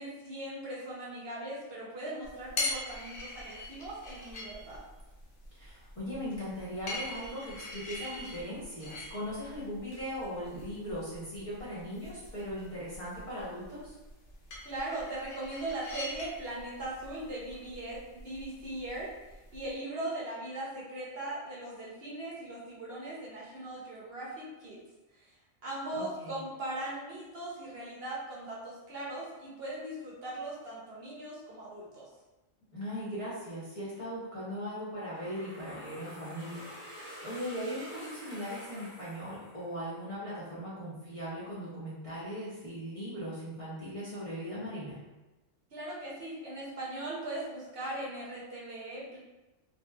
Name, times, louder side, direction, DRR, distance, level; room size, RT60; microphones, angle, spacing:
voice 1, 0.0-4.8 14.6-19.1 19.5-24.8 25.6-32.1 45.7-49.2, right 1 dB, 60° right, -5 dB, 0.9 m, -39 dB
sound 1, 2.2-19.7, left 2 dB, 80° left, 1.1 m, -43 dB
voice 2, 5.5-14.0 25.9-26.4 32.7-36.9 37.2-45.0, equal, 30° left, -9 dB, 0.8 m, -39 dB
sound 2, 35.0-39.9, equal, 25° right, 0.7 m, -48 dB
3.1 x 2.6 x 2.3 m, 1.1 s
omnidirectional pair, 1.3 m